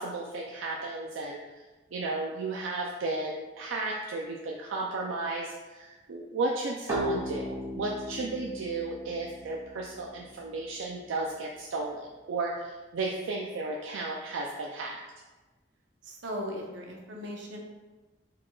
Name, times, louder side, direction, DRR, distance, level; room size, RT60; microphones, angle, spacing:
voice 1, 0.0-1.4 1.9-7.5 7.7-15.0, right 3 dB, 85° right, -1 dB, 0.4 m, -34 dB
sound 1, 6.9-10.4, equal, 15° right, 0.5 m, -36 dB
voice 2, 16.0-17.6, equal, 70° right, 0 dB, 0.8 m, -38 dB
4.7 x 3.7 x 2.3 m, 1.2 s
head